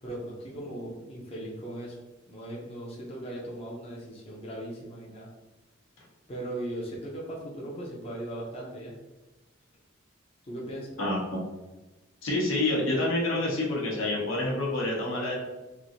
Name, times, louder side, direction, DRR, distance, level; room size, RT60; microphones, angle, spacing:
voice 1, 0.0-2.0 2.3-5.3 6.3-8.9 10.5-10.9, right 1 dB, 30° left, -4 dB, 0.5 m, -38 dB
voice 2, 11.0-11.4 12.2-15.4, left 2 dB, 90° left, -3 dB, 0.8 m, -27 dB
3.0 x 2.5 x 2.6 m, 1.1 s
head